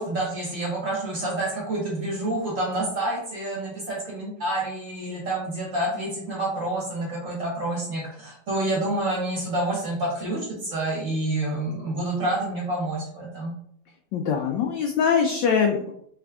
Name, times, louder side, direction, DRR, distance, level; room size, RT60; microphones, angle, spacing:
voice 1, 0.0-13.5, right 1 dB, 45° right, -4 dB, 1.3 m, -28 dB
voice 2, 14.1-15.9, left 6 dB, 80° left, 3 dB, 1.0 m, -23 dB
3.7 x 3.3 x 3.4 m, 0.68 s
omnidirectional pair, 2.4 m